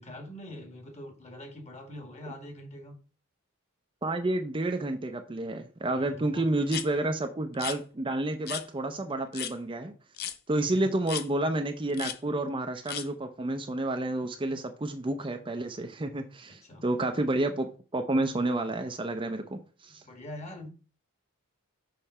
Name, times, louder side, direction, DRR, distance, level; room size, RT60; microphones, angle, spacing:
voice 1, 0.0-3.0 5.9-6.7 10.5-10.9 16.5-16.8 20.0-20.7, left 1 dB, 30° left, 1.5 m, -44 dB
voice 2, 4.0-9.9 10.5-20.0, right 2 dB, 25° right, 0.5 m, -30 dB
sound 1, 6.7-6.9 7.5-7.8 8.5-8.6 9.3-9.5 10.2-10.4 11.1-11.3 11.9-12.2 12.9-13.1, left 9 dB, 45° left, 0.6 m, -35 dB
6.6 x 3.3 x 5.5 m
head